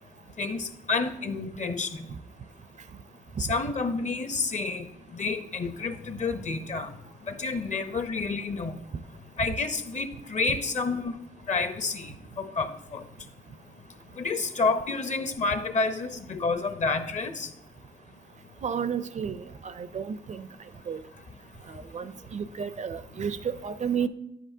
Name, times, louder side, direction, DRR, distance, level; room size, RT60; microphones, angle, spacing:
voice 1, 0.4-2.1 3.4-4.9 5.1-6.9 7.3-8.8 9.4-11.1 11.5-13.0 14.2-17.5, left 4 dB, 45° left, 9 dB, 0.8 m, -29 dB
voice 2, 18.6-19.4 19.6-20.5 20.9-21.0 21.7-24.1, right 7 dB, 45° right, 13 dB, 0.4 m, -32 dB
10.0 x 7.6 x 2.7 m, 0.82 s
cardioid pair, 70°, 17 cm